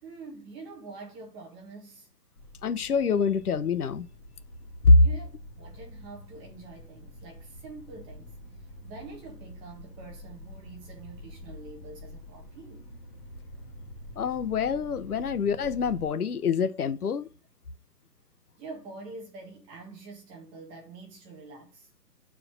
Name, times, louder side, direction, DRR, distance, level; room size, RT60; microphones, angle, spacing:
voice 1, 0.0-2.1 5.0-5.3 5.6-8.3 8.8-12.9 18.6-21.9, right 3 dB, 10° right, 1.4 m, -45 dB
sound 1, 2.4-16.1, left 1 dB, 20° left, 2.3 m, -47 dB
voice 2, 2.6-4.1 4.8-5.0 14.2-17.3, left 4 dB, 65° left, 1.0 m, -24 dB
9.7 x 5.0 x 6.2 m
hypercardioid pair, 160°, 49 cm